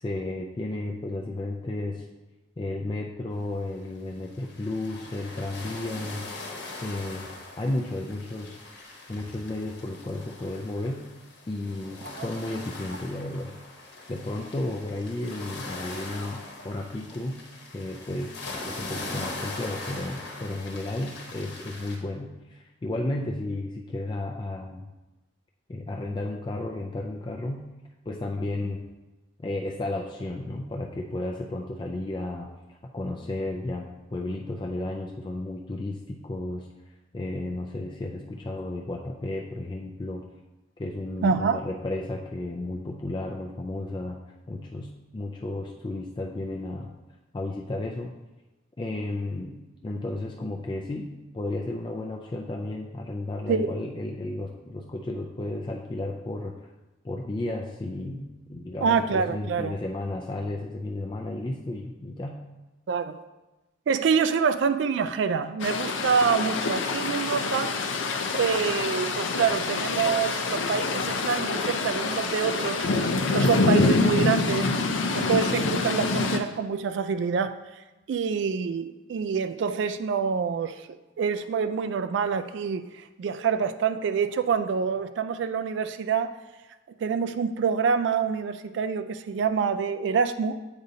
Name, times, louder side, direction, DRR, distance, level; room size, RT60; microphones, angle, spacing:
voice 1, 0.0-2.0 2.6-6.3 6.5-8.6 9.1-11.0 11.5-13.5 14.1-17.4 17.7-24.9 25.7-27.6 28.1-28.8 29.4-36.7 37.1-40.2 40.8-44.2 44.5-46.9 47.3-48.1 48.8-49.5 49.8-56.5 57.0-62.4, left 2 dB, 25° left, 0 dB, 0.3 m, -33 dB
sound 1, 3.7-3.8 4.2-22.0, left 2 dB, 60° left, 1.0 m, -41 dB
voice 2, 41.2-41.6 53.5-53.7 58.8-59.8 62.9-63.2 63.9-67.7 68.3-72.9 73.3-74.7 75.1-77.5 78.1-80.9 81.2-86.3 87.0-90.5, right 6 dB, 65° right, 9 dB, 0.3 m, -26 dB
sound 2, 65.6-76.4, left 3 dB, 80° left, 0.5 m, -26 dB
8.0 x 5.1 x 2.7 m, 1.1 s
head